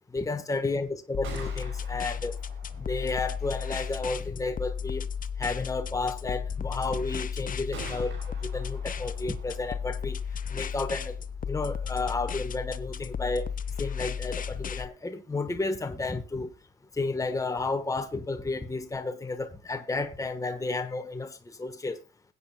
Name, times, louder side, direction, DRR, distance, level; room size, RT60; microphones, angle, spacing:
voice 1, 0.1-2.4 2.8-5.1 5.4-8.1 8.4-10.2 10.5-11.2 11.5-13.5 13.8-16.5 16.9-22.0, left 3 dB, 15° left, 1.2 m, -32 dB
Gunshot gunfire, 1.0-14.8, right 5 dB, 85° right, 5.7 m, -50 dB
sound 1, 1.1-14.9, left 7 dB, 45° left, 0.8 m, -34 dB
20.5 x 8.7 x 2.2 m
cardioid pair, 90°, 20 cm